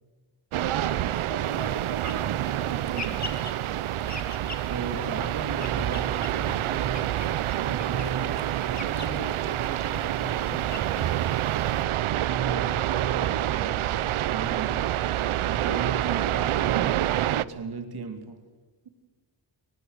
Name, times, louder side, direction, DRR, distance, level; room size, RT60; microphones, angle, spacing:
voice 1, 0.5-3.2 16.0-16.5, right 6 dB, 70° right, 6 dB, 3.9 m, -37 dB
sound 1, 0.5-17.4, right 13 dB, 90° right, 0.8 m, -27 dB
sound 2, 1.4-11.8, left 3 dB, 35° left, 2.7 m, -43 dB
sound 3, 3.9-6.1 10.4-13.6, left 1 dB, 70° left, 4.4 m, -54 dB
voice 2, 4.7-7.1 7.6-10.8 12.2-13.9 14.3-14.8 15.4-18.4, right 5 dB, 50° right, 6 dB, 2.7 m, -35 dB
22.5 x 20.5 x 6.6 m, 1.3 s
wide cardioid pair, 155°, 48 cm